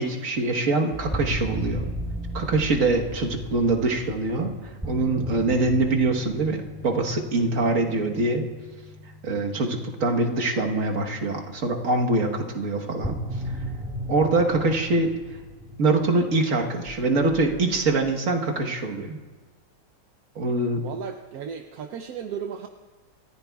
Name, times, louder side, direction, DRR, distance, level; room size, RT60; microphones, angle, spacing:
voice 1, 0.0-1.9 2.3-4.5 4.9-8.4 9.2-13.2 14.1-15.1 15.8-19.2 20.3-20.8, right 2 dB, 50° right, 2 dB, 1.6 m, -24 dB
sound 1, 0.9-11.1 13.0-18.1, equal, 5° right, 0.4 m, -36 dB
voice 2, 20.8-22.7, right 7 dB, 65° right, 6 dB, 1.0 m, -35 dB
28.0 x 15.0 x 2.3 m, 1.3 s
omnidirectional pair, 1.9 m